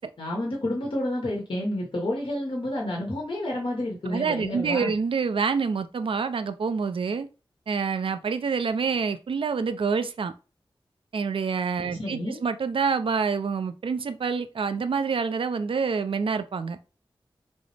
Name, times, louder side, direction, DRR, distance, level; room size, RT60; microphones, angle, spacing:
voice 1, 0.2-4.9 11.8-12.4, left 1 dB, 65° left, 1.4 m, -30 dB
voice 2, 4.1-7.3 7.7-10.3 11.1-16.8, right 5 dB, 70° right, 0.4 m, -27 dB
6.1 x 2.0 x 3.3 m
wide cardioid pair, 80°, 9 cm